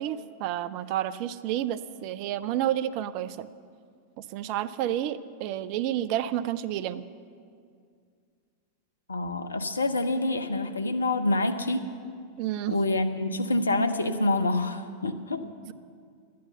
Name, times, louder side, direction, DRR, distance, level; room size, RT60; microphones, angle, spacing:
voice 1, 0.0-3.5 4.2-7.0 12.4-12.8, right 12 dB, 45° right, 15 dB, 0.4 m, -30 dB
voice 2, 9.1-11.9 12.7-15.5, left 2 dB, 75° left, 8 dB, 0.7 m, -27 dB
11.5 x 9.4 x 7.8 m, 2.2 s
figure-of-eight pair, 90°, 0 cm